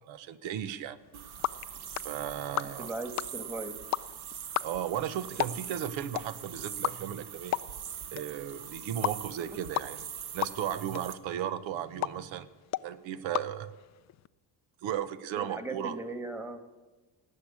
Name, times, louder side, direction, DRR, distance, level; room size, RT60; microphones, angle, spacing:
voice 1, 0.1-1.0 2.0-2.9 4.6-7.6 8.1-10.1 10.3-12.5 12.8-13.7 14.8-16.0, right 10 dB, 80° right, 14 dB, 1.0 m, -35 dB
sound 1, 1.0-14.3, left 13 dB, 40° left, 0.4 m, -38 dB
sound 2, 1.1-11.1, right 8 dB, 55° right, 1.1 m, -43 dB
voice 2, 2.8-3.7 15.3-16.6, right 2 dB, 5° right, 7 dB, 1.7 m, -38 dB
18.0 x 6.7 x 8.6 m, 1.2 s
cardioid pair, 90°, 46 cm